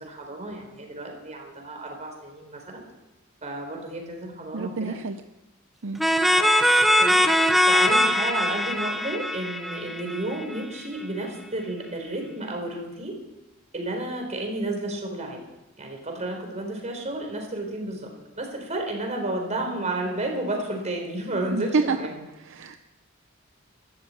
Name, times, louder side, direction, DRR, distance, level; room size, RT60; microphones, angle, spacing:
voice 1, 0.0-2.8 3.4-5.0 6.3-6.6 6.9-13.2 13.7-15.4 15.8-18.1 18.4-22.1, right 2 dB, 35° right, 2 dB, 4.4 m, -32 dB
voice 2, 4.5-5.2 5.8-6.0 21.5-22.0 22.4-22.8, right 4 dB, 65° right, 9 dB, 0.7 m, -27 dB
sound 1, 6.0-10.6, equal, ahead, 0.7 m, -21 dB
13.5 x 12.0 x 8.6 m, 1.0 s
head